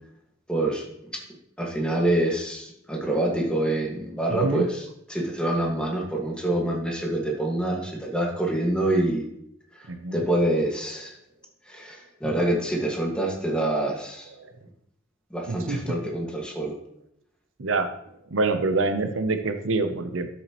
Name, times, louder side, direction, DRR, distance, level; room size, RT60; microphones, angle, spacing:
voice 1, 0.5-0.9 1.6-9.2 9.7-11.2 11.7-14.3 15.3-16.8, right 1 dB, 5° left, -1 dB, 1.8 m, -26 dB
voice 2, 4.3-4.7 9.9-10.2 14.4-14.5 15.5-16.0 17.6-17.9 18.3-20.3, right 3 dB, 85° right, 8 dB, 0.8 m, -26 dB
12.0 x 7.1 x 3.1 m, 0.76 s
head